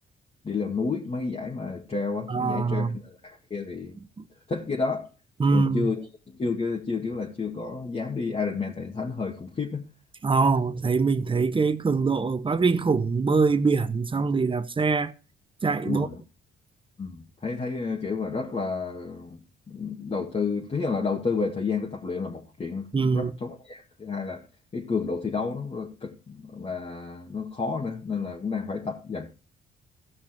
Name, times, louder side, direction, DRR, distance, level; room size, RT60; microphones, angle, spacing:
voice 1, 0.4-4.0 4.5-5.1 5.5-9.8 15.8-16.2 17.0-24.4 24.7-29.3, left 4 dB, 30° left, 1.9 m, -31 dB
voice 2, 2.3-2.9 5.4-5.9 10.2-15.1 15.6-16.1 22.9-23.3, right 4 dB, 25° right, 0.9 m, -23 dB
15.5 x 5.9 x 4.4 m
cardioid pair, 90°, 20 cm